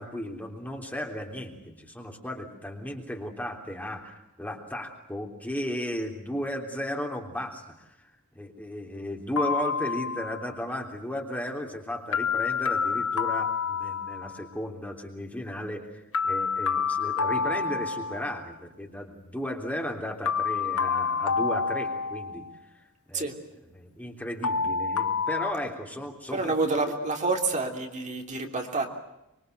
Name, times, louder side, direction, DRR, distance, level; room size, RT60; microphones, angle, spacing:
voice 1, 0.0-7.6 8.0-8.1 8.3-22.4 23.1-23.3 23.7-26.7, left 1 dB, 5° left, 3 dB, 3.3 m, -35 dB
sound 1, 9.4-10.5 12.1-14.4 16.1-18.5 20.3-22.6 24.4-25.5, left 5 dB, 85° left, 1.3 m, -28 dB
voice 2, 26.3-28.9, right 3 dB, 35° right, 3 dB, 3.2 m, -28 dB
25.0 x 24.0 x 7.9 m, 0.89 s
head